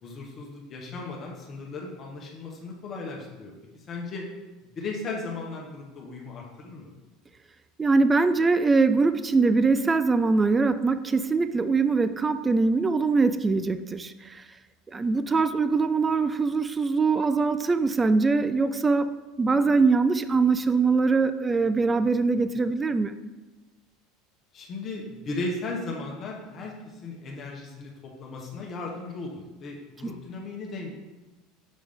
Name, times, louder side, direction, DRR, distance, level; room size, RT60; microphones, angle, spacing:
voice 1, 0.0-3.5 3.9-4.3 4.8-6.9 24.5-30.9, left 3 dB, 40° left, -2 dB, 1.2 m, -36 dB
voice 2, 7.8-14.4 14.9-23.2 30.0-30.1, right 4 dB, 20° right, 12 dB, 0.4 m, -23 dB
6.4 x 5.0 x 3.5 m, 1.1 s
hypercardioid pair, 75°, 0 cm